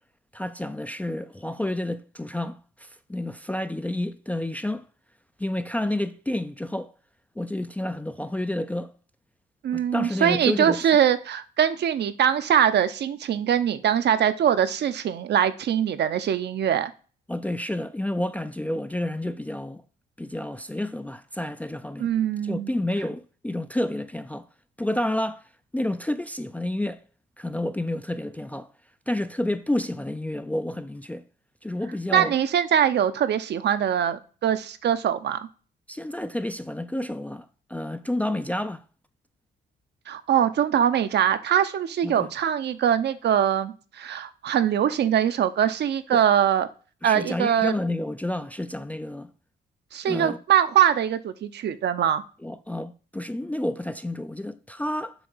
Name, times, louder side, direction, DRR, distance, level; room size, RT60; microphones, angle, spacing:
voice 1, 0.3-2.6 3.1-4.9 5.4-6.9 7.4-8.9 9.7-10.8 17.3-19.8 20.2-22.1 22.4-24.5 24.8-25.4 25.7-27.0 27.4-28.7 29.1-31.2 31.6-32.3 35.9-38.8 42.0-42.3 46.1-46.2 47.0-49.3 50.1-50.4 52.4-55.1, left 1 dB, 5° left, 0.3 m, -30 dB
voice 2, 9.6-16.9 22.0-22.7 32.1-35.4 40.1-46.7 47.0-47.7 49.9-52.2, right 9 dB, 60° right, 0.6 m, -22 dB
7.0 x 2.9 x 5.5 m
cardioid pair, 90°, 20 cm